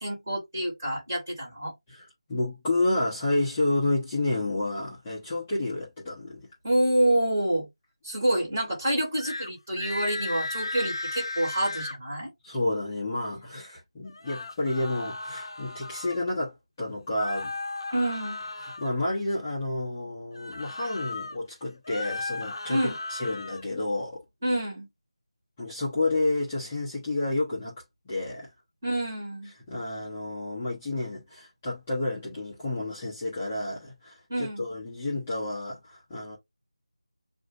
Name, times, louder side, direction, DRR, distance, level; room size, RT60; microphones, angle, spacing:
voice 1, 0.0-1.7 6.6-7.7 8.0-12.3 17.9-18.4 22.7-23.0 24.4-24.9 28.8-29.5 34.3-34.6, right 1 dB, 25° right, 2.4 m, -27 dB
voice 2, 1.9-6.5 12.4-17.5 18.6-24.2 25.6-27.8 28.1-28.5 29.7-36.4, left 2 dB, 10° left, 0.7 m, -30 dB
sound 1, 9.2-9.5 9.8-12.0 14.0-16.2 17.2-18.9 20.3-21.4 21.8-23.6, left 2 dB, 50° left, 0.7 m, -35 dB
7.3 x 2.6 x 2.4 m
figure-of-eight pair, 175°, 3 cm